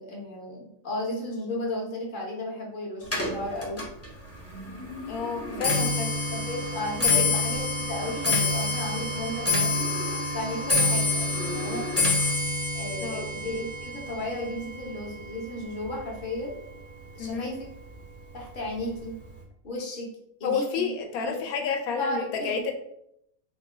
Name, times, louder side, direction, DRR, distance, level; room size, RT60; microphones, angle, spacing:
voice 1, 0.0-3.9 5.4-5.7 6.3-9.9 10.3-11.8 12.7-16.5 17.1-17.7 18.3-19.1 19.6-20.1 20.4-20.9 21.2-21.4 22.0-22.5, left 1 dB, 45° left, -2 dB, 0.8 m, -34 dB
Clock, 3.0-16.4 16.7-17.2 18.0-18.1 18.4-18.8 19.0-19.1, left 3 dB, 20° left, 0.4 m, -28 dB
voice 2, 5.1-6.1 7.0-7.2 13.0-13.3 17.2-17.5 20.4-22.7, left 5 dB, 80° left, 3 dB, 1.1 m, -30 dB
3.6 x 2.2 x 3.2 m, 0.75 s
omnidirectional pair, 1.5 m